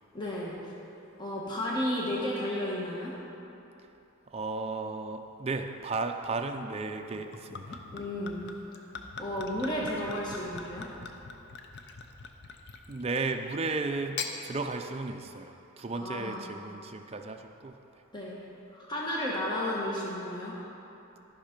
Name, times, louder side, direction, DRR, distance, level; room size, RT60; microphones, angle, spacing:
voice 1, 0.1-0.6 1.2-3.2 7.9-8.4 9.2-10.9 16.0-16.4 18.1-18.4 18.7-20.6, left 1 dB, 20° left, -5 dB, 1.2 m, -33 dB
voice 2, 4.3-7.8 12.9-17.7, right 3 dB, 25° right, 5 dB, 0.4 m, -34 dB
Gurgling / Chink clink / Liquid, 7.1-13.3 14.0-14.4, left 4 dB, 50° left, 0.6 m, -42 dB
13.5 x 5.6 x 5.2 m, 2.9 s
head